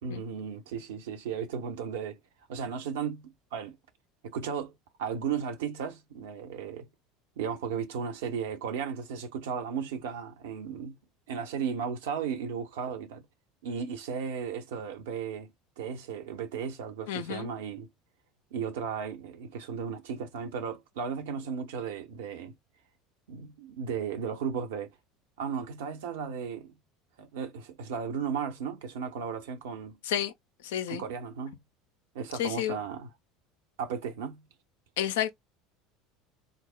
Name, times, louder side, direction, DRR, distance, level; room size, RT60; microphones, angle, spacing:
voice 1, 0.0-2.2 2.5-3.8 4.2-4.7 5.0-6.9 7.4-11.0 11.3-13.2 13.6-17.9 18.5-22.5 23.3-24.9 25.4-26.7 27.2-30.0 30.9-31.6 32.1-33.1 33.8-34.4, right 7 dB, 65° right, 0.7 m, -35 dB
voice 2, 17.1-17.5 30.0-30.3 30.6-31.0 32.4-32.8 35.0-35.3, left 11 dB, 65° left, 0.4 m, -30 dB
3.8 x 2.0 x 2.3 m
figure-of-eight pair, 70°, 0 cm